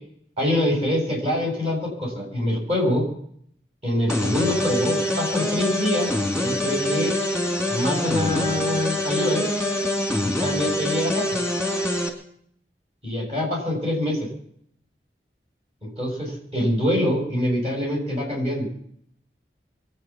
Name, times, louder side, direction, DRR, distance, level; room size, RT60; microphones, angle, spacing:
voice 1, 0.4-3.0 3.8-6.1 6.4-7.2 7.7-9.5 10.4-11.2 13.0-14.3 15.8-18.7, left 1 dB, 35° right, -2 dB, 7.4 m, -25 dB
sound 1, 4.1-12.1, left 1 dB, 5° right, 2.6 m, -25 dB
24.0 x 9.4 x 6.1 m, 0.66 s
head